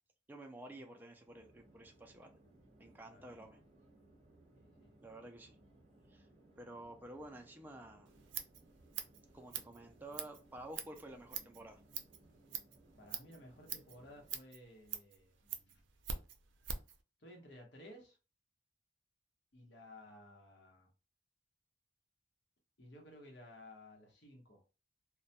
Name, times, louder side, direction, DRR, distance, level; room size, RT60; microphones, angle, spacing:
voice 1, 0.3-2.4 2.8-3.6 5.0-5.6 6.1-6.3 6.6-8.1 9.3-11.8, right 1 dB, 10° right, 0.3 m, -51 dB
Chatter / Fixed-wing aircraft airplane, 1.1-14.5, right 1 dB, 40° right, 0.7 m, -65 dB
voice 2, 3.1-3.6 4.6-4.9 13.0-15.8 17.2-18.2 19.5-20.9 22.8-24.6, left 1 dB, 65° left, 0.9 m, -57 dB
Scissors, 8.1-17.0, right 7 dB, 90° right, 0.4 m, -45 dB
2.2 x 2.1 x 2.7 m
head